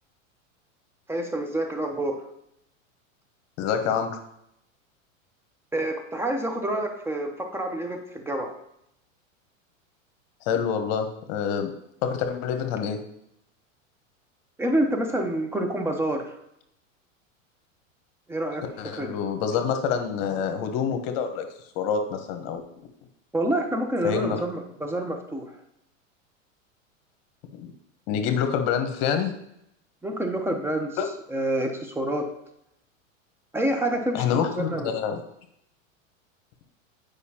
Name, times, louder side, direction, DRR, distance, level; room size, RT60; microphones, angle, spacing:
voice 1, 1.1-2.2 5.7-8.5 14.6-16.4 18.3-18.6 18.9-19.2 23.3-25.5 30.0-31.0 31.3-32.3 33.5-34.9, right 1 dB, 5° right, 4 dB, 0.8 m, -27 dB
voice 2, 3.6-4.2 10.4-11.7 12.0-13.0 18.8-21.5 21.7-22.6 24.0-24.4 27.5-27.7 28.1-29.3 31.0-31.1 34.1-35.2, left 7 dB, 50° left, 7 dB, 1.1 m, -26 dB
8.2 x 5.1 x 2.9 m, 0.77 s
hypercardioid pair, 110°, 40 cm